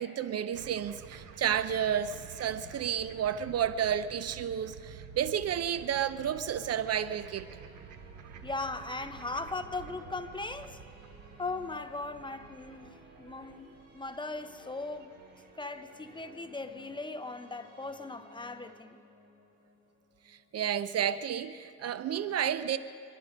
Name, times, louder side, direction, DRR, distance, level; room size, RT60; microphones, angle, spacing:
voice 1, 0.0-7.5 20.3-22.8, right 9 dB, 55° right, 0.6 m, -31 dB
sound 1, 0.5-15.9, right 6 dB, 80° right, 1.1 m, -50 dB
sound 2, 5.2-21.3, right 2 dB, 35° right, 5.4 m, -57 dB
voice 2, 8.4-10.8 11.4-15.2 15.5-19.0, left 3 dB, 15° left, 0.8 m, -38 dB
24.0 x 11.0 x 5.2 m
cardioid pair, 90°, 30 cm